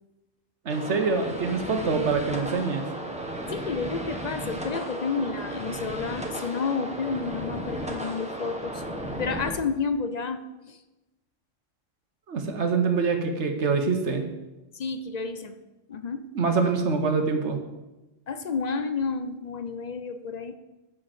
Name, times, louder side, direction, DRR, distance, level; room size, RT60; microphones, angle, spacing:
voice 1, 0.6-2.9 12.3-14.3 16.3-17.6, right 4 dB, 65° right, 5 dB, 1.3 m, -25 dB
sound 1, 0.7-9.5, right 1 dB, 5° right, 1.2 m, -35 dB
voice 2, 3.5-8.8 9.2-10.8 14.7-15.5 15.9-16.3 18.3-20.5, left 5 dB, 55° left, 9 dB, 0.4 m, -31 dB
7.4 x 6.2 x 7.5 m, 1.0 s
omnidirectional pair, 1.3 m